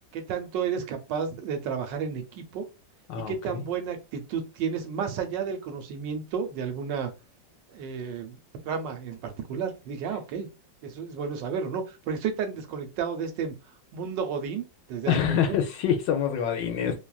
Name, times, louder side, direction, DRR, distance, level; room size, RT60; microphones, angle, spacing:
voice 1, 0.1-2.6 3.3-7.1 7.7-8.4 8.6-10.5 10.8-13.5 13.9-15.6 16.8-16.9, right 6 dB, 80° right, 1.3 m, -32 dB
voice 2, 3.1-3.6 15.1-17.0, left 8 dB, 75° left, 1.2 m, -26 dB
3.2 x 2.4 x 2.2 m
omnidirectional pair, 2.0 m